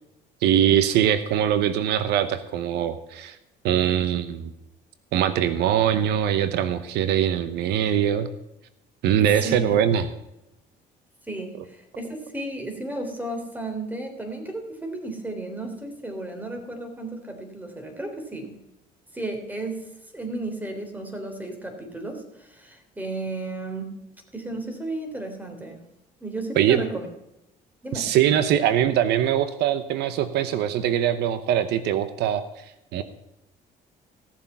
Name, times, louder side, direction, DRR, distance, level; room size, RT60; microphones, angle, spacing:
voice 1, 0.4-3.4 3.6-4.5 5.1-8.3 9.0-10.1 26.6-26.8 27.9-32.4 32.9-33.0, right 10 dB, 80° right, 12 dB, 0.9 m, -22 dB
voice 2, 9.2-9.8 11.3-18.6 19.1-19.9 20.1-23.9 24.3-25.8 26.2-27.1 27.8-28.1, right 2 dB, 10° right, 4 dB, 3.4 m, -33 dB
16.0 x 7.4 x 5.6 m, 0.89 s
cardioid pair, 110°, 17 cm